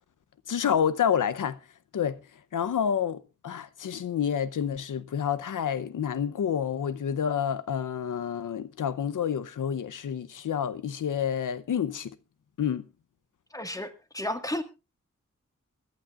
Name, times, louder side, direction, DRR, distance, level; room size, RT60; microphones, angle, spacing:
voice 1, 0.5-1.6 1.9-2.2 2.5-12.2 12.6-12.9, left 8 dB, 90° left, 0.8 m, -29 dB
voice 2, 13.5-14.6, left 1 dB, 10° left, 1.8 m, -33 dB
23.5 x 11.5 x 2.4 m
wide cardioid pair, 105°, 30 cm